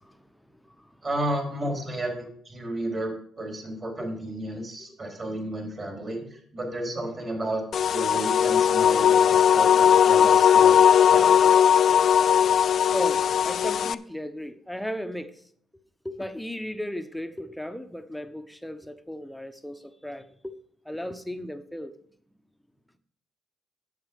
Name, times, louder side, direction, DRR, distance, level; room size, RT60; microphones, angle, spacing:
voice 1, 0.0-1.0 4.0-4.1 12.9-15.4 16.0-20.6 20.8-21.9, left 1 dB, 5° left, 0.8 m, -36 dB
voice 2, 1.0-7.6 7.9-11.6, right 1 dB, 35° right, 3.7 m, -32 dB
sound 1, 7.7-13.9, left 8 dB, 60° left, 0.4 m, -18 dB
9.6 x 7.3 x 5.2 m
cardioid pair, 90°, 0 cm